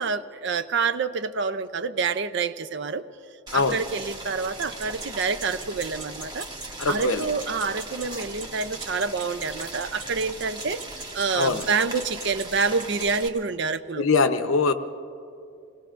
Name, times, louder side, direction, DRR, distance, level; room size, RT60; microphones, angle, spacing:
voice 1, 0.0-3.0 3.5-6.5 6.9-14.1, right 4 dB, 55° right, 12 dB, 0.5 m, -27 dB
Boiling, 3.5-13.3, right 2 dB, 20° right, 1.1 m, -39 dB
Ticking Stopwatch, 4.4-13.2, right 3 dB, 35° right, 1.5 m, -39 dB
voice 2, 6.8-7.2 11.3-11.6 14.0-14.7, left 4 dB, 70° left, 9 dB, 0.7 m, -22 dB
26.5 x 19.0 x 2.5 m, 2.6 s
head